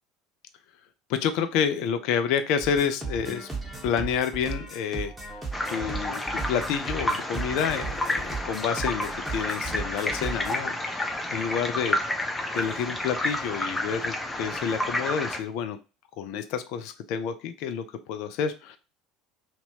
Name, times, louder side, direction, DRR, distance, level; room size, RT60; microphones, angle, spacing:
voice 1, 1.1-3.5 3.8-5.1 5.7-12.0 12.5-15.8 16.2-18.8, left 7 dB, 60° left, 9 dB, 0.4 m, -29 dB
sound 1, 2.6-10.5, right 4 dB, 5° right, 1.3 m, -36 dB
sound 2, 5.5-15.4, left 1 dB, 15° left, 0.6 m, -30 dB
2.9 x 2.7 x 2.8 m, 0.32 s
figure-of-eight pair, 70°, 0 cm